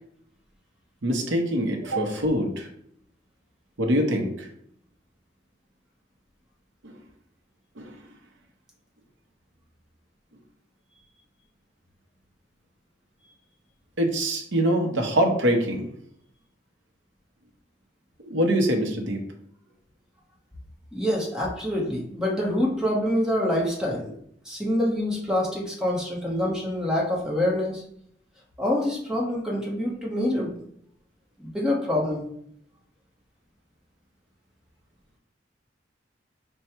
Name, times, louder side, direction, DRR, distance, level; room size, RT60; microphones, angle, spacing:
voice 1, 1.0-2.7 3.8-4.5 6.8-6.9 7.8-7.9 14.0-15.9 18.2-19.2, equal, 85° right, 3 dB, 0.8 m, -24 dB
voice 2, 20.9-24.1 24.5-27.8 28.6-30.5 31.4-32.3, left 1 dB, 5° right, -3 dB, 1.0 m, -26 dB
5.4 x 2.2 x 4.4 m, 0.69 s
head